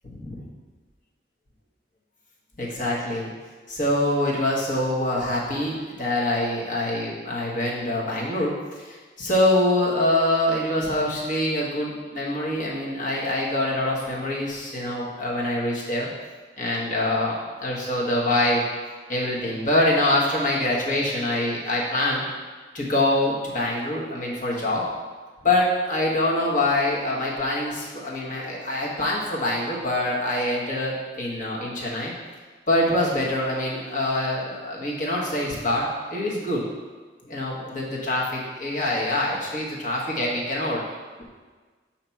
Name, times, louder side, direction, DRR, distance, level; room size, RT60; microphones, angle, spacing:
voice 1, 0.0-0.4 2.6-3.3 3.7-16.1 16.6-18.6 19.1-22.2 22.7-24.8 25.4-32.1 32.7-36.6 37.2-40.8, left 1 dB, 45° left, -4 dB, 1.3 m, -25 dB
6.8 x 2.9 x 5.7 m, 1.4 s
head